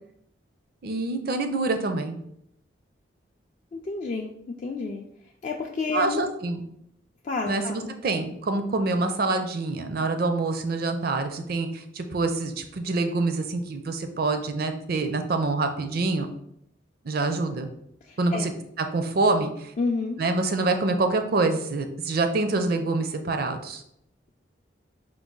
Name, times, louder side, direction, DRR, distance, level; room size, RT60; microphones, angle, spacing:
voice 1, 0.8-2.2 5.9-6.6 7.5-16.3 17.0-17.7 18.2-18.5 18.8-19.7 20.2-23.8, right 3 dB, 55° right, 7 dB, 0.5 m, -26 dB
voice 2, 3.7-4.3 4.6-5.0 5.4-6.3 7.2-7.9 18.1-18.5 19.8-20.2, left 4 dB, 40° left, 1 dB, 0.3 m, -30 dB
4.6 x 2.3 x 3.8 m, 0.75 s
head